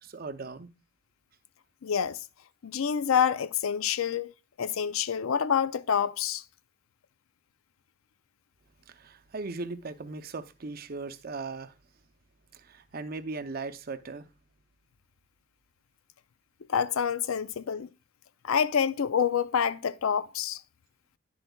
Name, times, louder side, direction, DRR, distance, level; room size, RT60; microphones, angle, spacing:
voice 1, 0.0-0.7 8.9-11.8 12.5-14.3, right 3 dB, 45° right, 0.6 m, -38 dB
voice 2, 1.8-2.2 2.6-4.3 4.6-6.4 16.7-17.9 18.4-20.6, left 7 dB, 90° left, 0.5 m, -27 dB
10.0 x 7.8 x 2.3 m
head